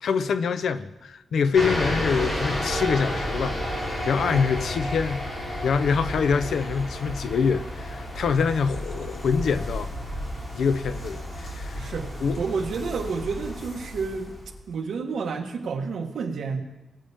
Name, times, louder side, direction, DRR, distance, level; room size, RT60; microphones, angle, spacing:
voice 1, 0.0-5.2 5.6-9.9 10.5-11.9 12.2-12.4, left 6 dB, 65° left, 0.6 m, -25 dB
sound 1, 1.5-14.5, equal, 45° left, 3.3 m, -32 dB
voice 2, 11.7-14.4 14.7-16.6, right 5 dB, 65° right, 1.4 m, -30 dB
20.5 x 8.6 x 3.5 m
wide cardioid pair, 170°, 0 cm